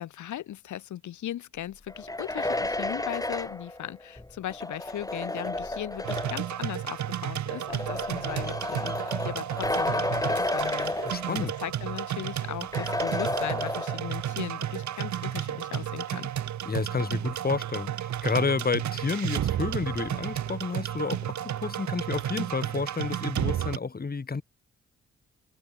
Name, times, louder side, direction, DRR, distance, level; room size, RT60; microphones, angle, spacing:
voice 1, 0.0-16.3, left 12 dB, 85° left, 3.7 m, -38 dB
sound 1, 1.9-6.6 7.5-11.7 12.0-12.1 12.7-14.3, left 2 dB, 10° left, 1.9 m, -32 dB
sound 2, 6.0-23.8, right 11 dB, 75° right, 1.7 m, -32 dB
voice 2, 11.1-11.5 16.7-24.4, left 4 dB, 30° left, 2.2 m, -30 dB
cardioid pair, 60°, 29 cm